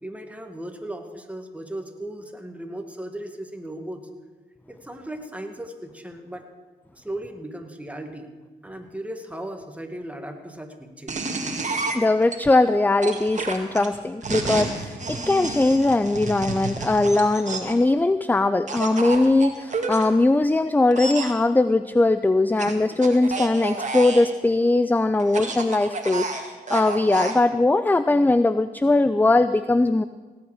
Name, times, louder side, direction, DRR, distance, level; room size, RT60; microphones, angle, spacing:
voice 1, 0.0-4.1 4.7-6.5 6.9-8.3 8.6-11.4 11.7-12.0 19.0-19.2, right 1 dB, 10° right, 5 dB, 1.9 m, -37 dB
sound 1, 11.1-12.4 13.0-17.8 18.7-20.0 20.9-21.3 22.6-24.3 25.2-27.4, right 3 dB, 45° right, 2.0 m, -30 dB
voice 2, 11.9-30.0, left 2 dB, 10° left, 13 dB, 0.4 m, -20 dB
17.5 x 8.9 x 5.0 m, 1.3 s
supercardioid pair, 50°, 17 cm